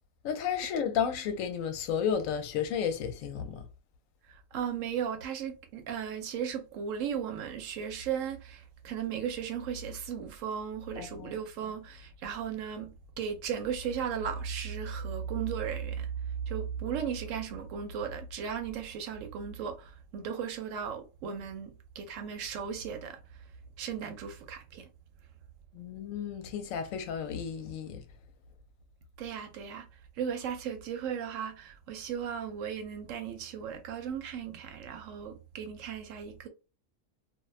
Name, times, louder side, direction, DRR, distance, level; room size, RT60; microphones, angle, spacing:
voice 1, 0.2-3.6 11.0-11.3 25.7-28.0, left 7 dB, 80° left, 1.0 m, -32 dB
voice 2, 4.3-23.5 23.8-24.9 29.2-29.9 30.1-36.5, right 7 dB, 75° right, 0.9 m, -36 dB
2.4 x 2.1 x 2.3 m
omnidirectional pair, 1.4 m